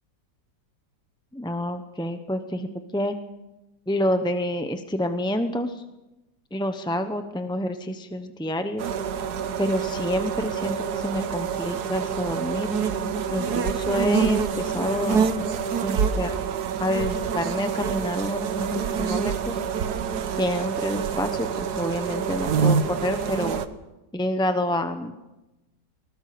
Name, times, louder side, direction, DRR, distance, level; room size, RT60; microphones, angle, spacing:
voice 1, 1.3-2.7 2.9-3.2 3.9-5.8 6.5-8.9 9.6-12.7 13.3-15.5 15.8-16.4 16.8-19.6 20.4-23.6 24.1-25.1, equal, 5° left, 7 dB, 0.6 m, -28 dB
sound 1, 8.8-23.7, right 6 dB, 65° right, 1.5 m, -26 dB
21.0 x 19.5 x 6.8 m, 0.99 s
omnidirectional pair, 1.9 m